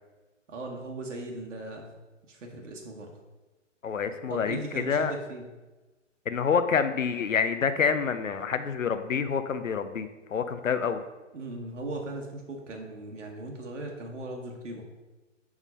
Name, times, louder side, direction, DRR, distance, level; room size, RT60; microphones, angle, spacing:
voice 1, 0.5-1.9 2.3-3.1 4.3-5.4 11.3-14.8, right 2 dB, 70° right, 1 dB, 1.2 m, -38 dB
voice 2, 3.8-5.1 6.3-11.0, left 6 dB, 90° left, 11 dB, 0.6 m, -27 dB
4.7 x 3.7 x 5.4 m, 1.2 s
figure-of-eight pair, 130°, 38 cm